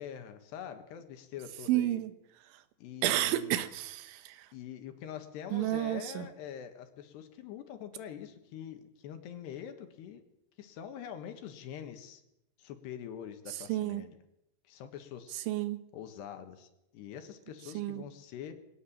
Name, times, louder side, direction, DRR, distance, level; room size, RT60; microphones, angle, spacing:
voice 1, 0.0-2.0 2.8-3.7 4.5-10.2 10.6-12.2 12.6-14.2 14.7-15.3 15.9-18.6, left 9 dB, 70° left, 3.4 m, -44 dB
voice 2, 1.7-2.1 3.0-4.5 5.5-6.3 13.7-14.0 15.3-15.8 17.8-18.0, right 14 dB, 90° right, 3.5 m, -31 dB
21.0 x 17.0 x 7.4 m
omnidirectional pair, 5.3 m